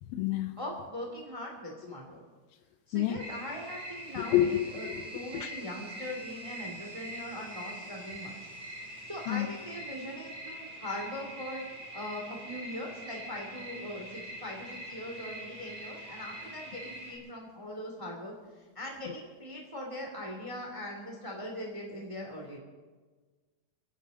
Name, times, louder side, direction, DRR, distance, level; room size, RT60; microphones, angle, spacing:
voice 1, 0.0-0.6 2.9-3.2 4.2-5.0 5.3-5.5 9.3-9.5, left 12 dB, 85° left, 8 dB, 2.6 m, -29 dB
voice 2, 0.6-2.2 2.9-4.5 4.7-8.4 9.0-11.6 11.9-22.6, left 1 dB, 10° right, 0 dB, 1.7 m, -41 dB
sound 1, 3.2-17.2, right 1 dB, 40° right, 4.7 m, -43 dB
28.0 x 11.0 x 4.0 m, 1.4 s
omnidirectional pair, 4.3 m